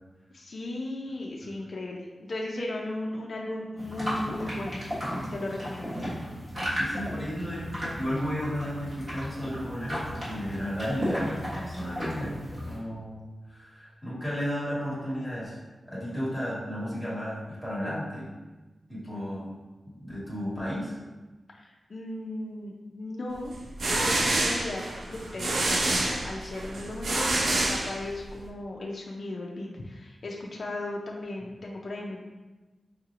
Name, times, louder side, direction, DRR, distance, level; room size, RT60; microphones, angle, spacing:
voice 1, 0.3-4.8 5.3-5.9 21.5-23.6 23.9-32.2, left 1 dB, 50° left, -2 dB, 0.4 m, -36 dB
sound 1, 3.8-12.8, equal, 40° right, 1.4 m, -35 dB
voice 2, 6.7-15.6 15.9-18.3 18.9-19.5 20.0-20.9, equal, 5° right, -8 dB, 1.2 m, -33 dB
sound 2, 23.5-28.4, right 2 dB, 90° right, 0.5 m, -27 dB
4.7 x 3.0 x 2.4 m, 1.2 s
wide cardioid pair, 155°, 0 cm